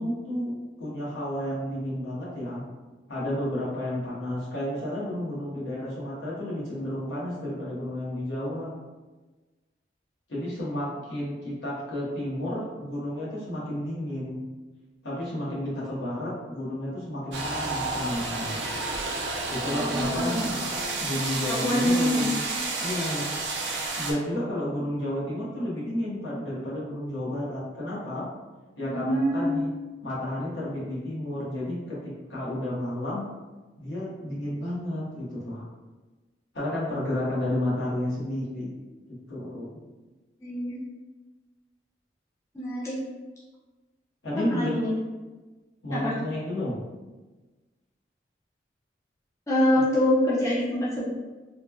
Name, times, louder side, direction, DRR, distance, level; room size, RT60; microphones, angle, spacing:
voice 1, 0.0-2.6 3.1-8.7 10.3-14.4 15.0-18.6 19.5-20.3 21.0-22.4 22.8-23.3 24.0-28.3 28.7-29.7 30.0-33.2 33.8-35.6 36.5-38.7 39.1-39.7 44.2-44.7 45.8-46.8, left 1 dB, 70° left, -7 dB, 0.9 m, -31 dB
sound 1, 17.3-24.1, right 3 dB, 75° right, 0.5 m, -30 dB
voice 2, 19.6-20.3 21.5-22.3 28.8-29.6 40.4-40.8 42.5-43.0 44.4-44.9 45.9-46.1 49.5-51.0, left 1 dB, 15° left, -8 dB, 0.4 m, -25 dB
3.0 x 2.2 x 2.2 m, 1.2 s
head